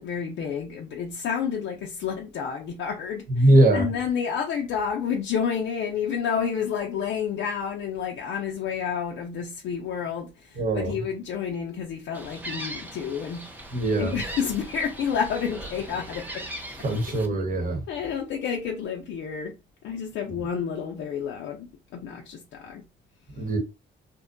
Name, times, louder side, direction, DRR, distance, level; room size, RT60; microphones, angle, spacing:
voice 1, 0.0-16.5 17.1-17.2 17.9-19.6 19.8-22.8, left 7 dB, 70° left, 0.5 m, -30 dB
voice 2, 3.3-3.9 10.6-11.0 13.7-14.1 16.8-17.8 23.3-23.6, right 1 dB, 45° right, 1.0 m, -21 dB
Gull seagull, 12.1-17.3, right 1 dB, 10° right, 0.6 m, -39 dB
2.6 x 2.2 x 2.4 m
cardioid pair, 90°, 20 cm